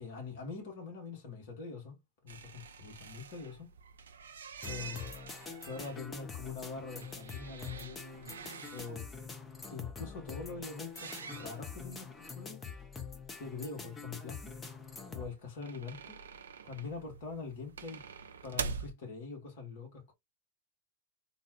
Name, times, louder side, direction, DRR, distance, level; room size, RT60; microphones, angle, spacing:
voice 1, 0.0-2.0 2.2-3.7 4.6-5.1 5.6-8.3 8.7-9.1 9.7-12.6 13.4-14.6 15.1-16.2 16.6-18.0 18.4-20.1, left 4 dB, 50° left, 1.6 m, -44 dB
sound 1, 2.3-8.9 10.8-12.0 12.3-12.4 12.6-12.7 15.2-18.9, right 5 dB, 65° right, 0.4 m, -45 dB
sound 2, 4.6-15.3, left 5 dB, 15° left, 0.8 m, -45 dB
3.9 x 2.4 x 3.0 m
figure-of-eight pair, 90°, 0 cm